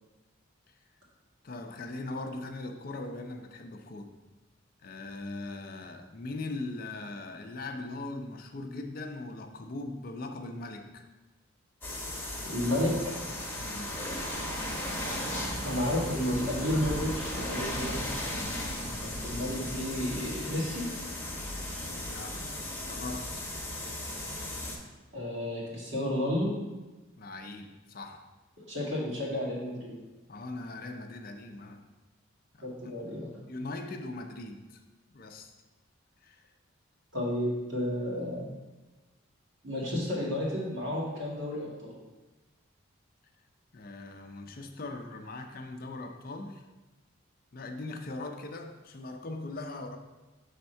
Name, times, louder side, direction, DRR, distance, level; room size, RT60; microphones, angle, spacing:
voice 1, 1.4-4.1 4.8-11.1 13.6-14.0 22.0-22.6 22.8-23.4 27.2-28.3 30.3-31.8 32.5-32.9 33.5-34.8 35.1-35.5 36.2-36.5 43.7-46.6 47.5-50.0, left 2 dB, 45° left, 5 dB, 0.4 m, -40 dB
sound 1, 11.8-24.8, left 1 dB, 10° left, 0.9 m, -36 dB
voice 2, 12.5-13.1 15.6-18.0 19.0-20.9 25.1-26.5 28.7-29.9 32.6-33.3 37.1-38.5 39.6-41.9, left 1 dB, 65° right, -5 dB, 1.9 m, -31 dB
6.5 x 3.5 x 4.3 m, 1.1 s
head